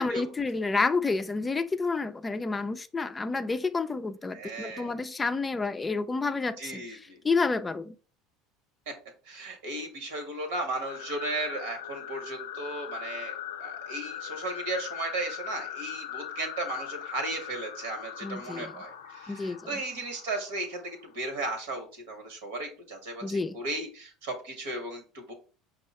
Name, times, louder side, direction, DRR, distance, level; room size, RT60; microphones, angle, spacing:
voice 1, 0.0-7.9 18.2-18.7 19.3-19.7 23.2-23.6, left 3 dB, 20° left, 0.4 m, -29 dB
voice 2, 4.3-4.9 6.6-7.2 9.3-25.3, right 2 dB, 85° right, 1.4 m, -35 dB
sound 1, 10.9-21.2, left 10 dB, 90° left, 0.4 m, -41 dB
5.3 x 2.4 x 4.2 m
hypercardioid pair, 85°, 0 cm